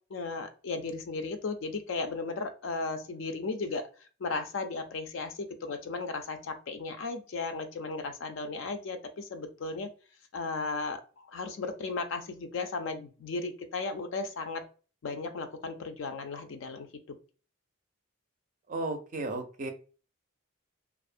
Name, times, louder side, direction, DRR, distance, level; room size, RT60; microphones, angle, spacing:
voice 1, 0.1-3.8 4.2-9.9 10.3-14.6 15.0-17.2, left 3 dB, 65° left, 8 dB, 0.4 m, -35 dB
voice 2, 18.7-19.7, right 2 dB, 40° right, 6 dB, 0.4 m, -34 dB
2.5 x 2.0 x 2.5 m, 0.37 s
head